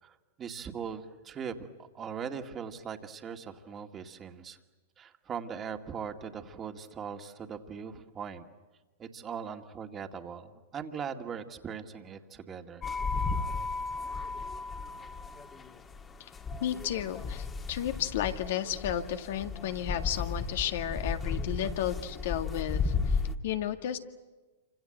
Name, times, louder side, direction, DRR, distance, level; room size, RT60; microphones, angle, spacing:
voice 1, 0.0-4.6 5.0-8.5 9.0-12.8, right 7 dB, 25° right, 5 dB, 2.1 m, -40 dB
sound 1, 12.8-23.4, left 4 dB, 20° left, 1.9 m, -34 dB
voice 2, 16.6-24.0, left 10 dB, 65° left, 7 dB, 1.9 m, -33 dB
28.5 x 26.0 x 8.0 m, 1.2 s
hypercardioid pair, 110°, 0 cm